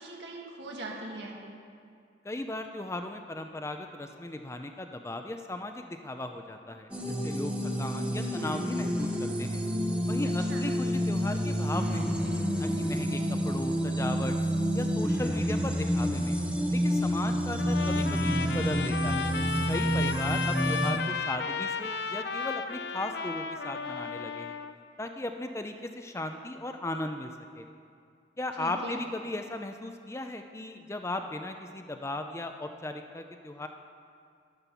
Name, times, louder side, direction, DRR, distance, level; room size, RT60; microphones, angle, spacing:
voice 1, 0.0-1.4 10.2-10.7 18.3-19.0 28.6-29.0, right 1 dB, 75° right, -2 dB, 2.2 m, -42 dB
voice 2, 2.2-9.6 10.1-14.3 14.7-16.4 16.7-19.3 19.7-24.6 25.0-27.7 28.4-33.7, left 1 dB, 15° left, 6 dB, 0.5 m, -37 dB
sound 1, 6.9-20.9, equal, 5° right, 0.8 m, -29 dB
Trumpet, 17.6-24.7, left 5 dB, 65° left, 0.6 m, -34 dB
11.0 x 9.8 x 7.0 m, 2.3 s
head